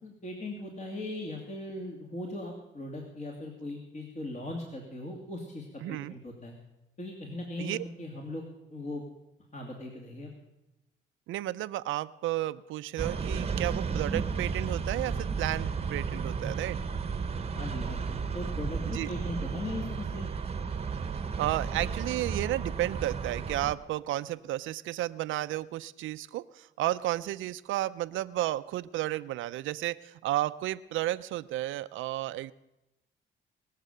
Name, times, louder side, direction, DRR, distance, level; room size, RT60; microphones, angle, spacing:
voice 1, 0.0-6.5 7.0-9.0 9.5-10.3 17.5-20.3, left 1 dB, 35° left, 0 dB, 2.6 m, -39 dB
voice 2, 5.8-6.1 7.6-7.8 11.3-16.8 18.9-19.1 21.4-32.5, right 15 dB, 85° right, 14 dB, 0.5 m, -32 dB
sound 1, 13.0-23.7, right 5 dB, 30° right, 1.0 m, -33 dB
22.0 x 7.4 x 6.8 m, 0.93 s
cardioid pair, 90°, 20 cm